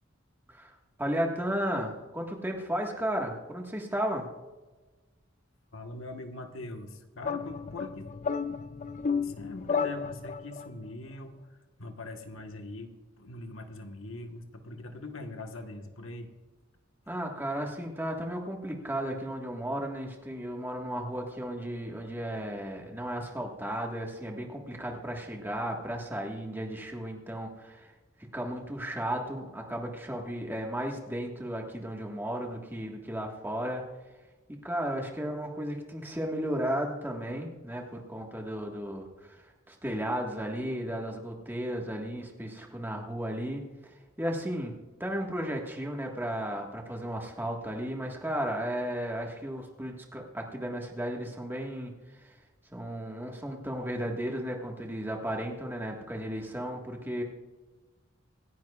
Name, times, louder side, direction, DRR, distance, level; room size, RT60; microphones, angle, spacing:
voice 1, 1.0-4.3 17.1-27.9 28.3-33.8 34.6-44.7 45.0-52.3 52.7-57.2, equal, 10° right, 1 dB, 1.6 m, -34 dB
voice 2, 5.7-8.1 9.2-11.4 11.8-16.3, left 2 dB, 80° left, 5 dB, 1.4 m, -42 dB
sound 1, 7.2-10.7, left 5 dB, 40° left, 0.4 m, -32 dB
26.0 x 10.5 x 2.4 m, 1.2 s
head